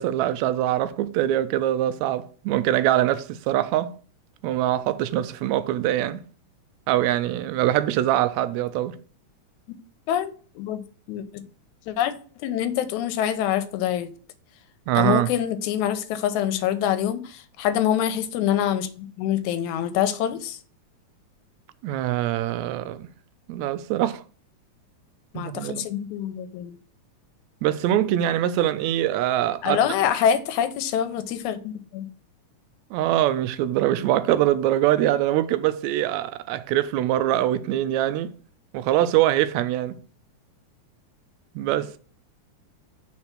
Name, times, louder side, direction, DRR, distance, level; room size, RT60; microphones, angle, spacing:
voice 1, 0.0-3.9 4.4-6.2 6.9-9.0 14.9-15.3 21.8-23.1 23.5-24.2 25.4-25.9 27.6-29.8 32.9-38.3 38.7-40.0 41.6-42.0, right 13 dB, 80° right, 1.7 m, -23 dB
voice 2, 10.1-10.8 11.1-11.4 11.9-12.1 12.4-14.1 15.0-20.6 25.3-26.8 29.6-32.1, left 10 dB, 85° left, 2.0 m, -25 dB
4.4 x 4.3 x 5.8 m
omnidirectional pair, 3.5 m